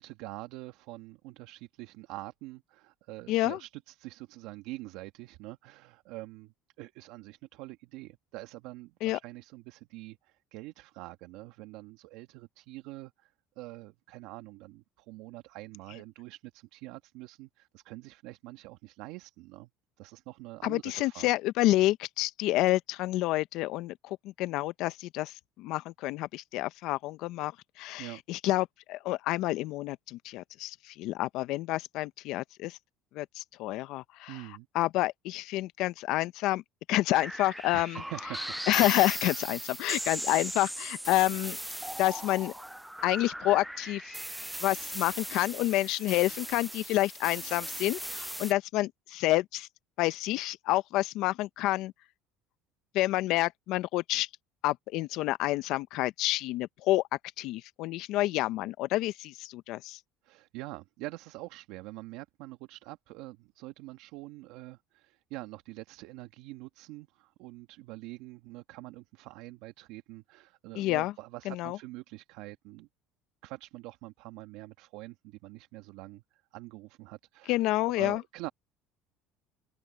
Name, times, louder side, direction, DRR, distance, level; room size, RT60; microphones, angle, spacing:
voice 1, 0.0-19.7 20.0-21.3 28.0-28.2 34.3-34.7 37.7-38.6 60.2-72.9 73.4-76.2 76.5-77.6 78.0-78.5, right 19 dB, 75° right, 1.4 m, -45 dB
voice 2, 3.3-3.6 9.0-9.2 20.6-27.5 27.8-32.8 33.1-34.4 34.7-36.6 36.9-38.0 38.7-41.6 42.0-42.5 43.0-44.2 44.6-49.7 50.0-51.9 52.9-54.3 54.6-57.0 57.4-60.0 70.8-71.1 71.5-71.8 77.5-78.2, left 17 dB, 70° left, 0.8 m, -29 dB
sound 1, 37.1-48.5, right 1 dB, 5° right, 0.3 m, -38 dB
open air
supercardioid pair, 90°, 0 cm